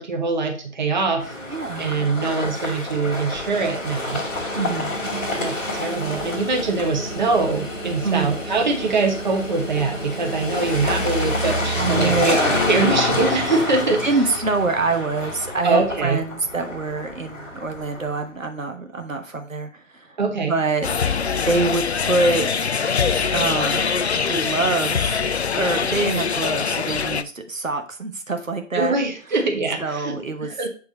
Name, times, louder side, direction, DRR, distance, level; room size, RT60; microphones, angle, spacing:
voice 1, 0.0-1.3 1.7-4.2 5.4-14.0 15.6-16.2 20.2-20.5 28.7-30.7, right 3 dB, 35° right, 3 dB, 1.2 m, -23 dB
sound 1, 1.2-18.2, left 2 dB, 10° left, 1.1 m, -28 dB
voice 2, 1.5-1.9 4.5-5.0 8.0-8.3 11.7-12.4 13.9-20.2 20.5-20.9 21.4-22.5 23.3-23.8 24.2-25.2 25.6-29.0 29.8-30.6, right 3 dB, 80° right, 5 dB, 1.4 m, -25 dB
sound 2, 20.8-27.2, left 6 dB, 60° left, 0.5 m, -23 dB
7.2 x 4.6 x 4.1 m, 0.38 s
figure-of-eight pair, 155°, 39 cm